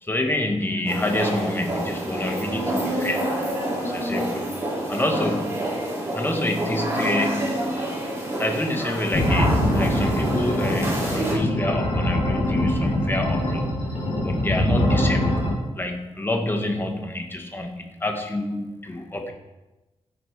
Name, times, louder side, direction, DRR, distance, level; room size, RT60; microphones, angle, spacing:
voice 1, 0.0-3.2 3.8-4.5 4.9-5.7 6.1-7.8 8.4-13.7 14.2-15.3 15.8-19.3, left 1 dB, 20° left, 4 dB, 1.5 m, -27 dB
sound 1, 0.9-11.3, right 1 dB, 20° right, 4.2 m, -28 dB
sound 2, 9.1-15.5, left 1 dB, 65° left, 3.2 m, -23 dB
15.0 x 8.4 x 4.7 m, 1.1 s
wide cardioid pair, 150°, 12 cm